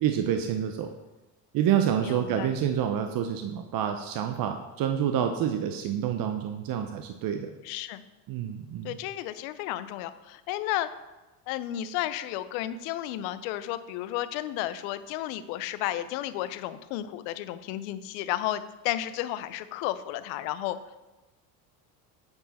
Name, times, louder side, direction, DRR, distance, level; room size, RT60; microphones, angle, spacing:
voice 1, 0.0-0.9 1.5-7.5 8.3-9.0, right 9 dB, 50° right, 6 dB, 0.6 m, -28 dB
voice 2, 2.0-2.5 7.6-8.0 8.8-10.9 11.5-20.8, left 13 dB, 80° left, 13 dB, 0.6 m, -32 dB
9.5 x 4.7 x 4.1 m, 1.1 s
supercardioid pair, 95°, 45 cm